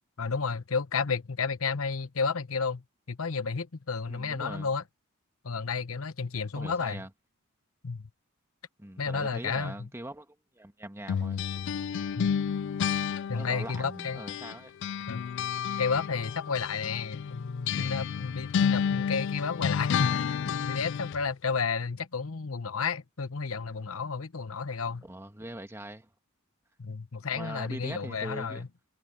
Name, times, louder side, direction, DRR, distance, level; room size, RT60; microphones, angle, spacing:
voice 1, 0.2-2.8 3.1-4.8 5.4-7.0 7.8-8.1 9.0-9.9 12.2-12.3 13.3-14.2 15.1-15.2 15.8-25.0 26.8-28.7, left 5 dB, 75° left, 1.0 m, -32 dB
voice 2, 4.1-4.7 6.6-7.1 8.8-11.4 13.3-14.7 25.0-26.1 27.3-28.6, right 1 dB, 10° right, 1.8 m, -42 dB
sound 1, 11.1-14.5 14.8-21.2, left 7 dB, 60° left, 0.3 m, -31 dB
head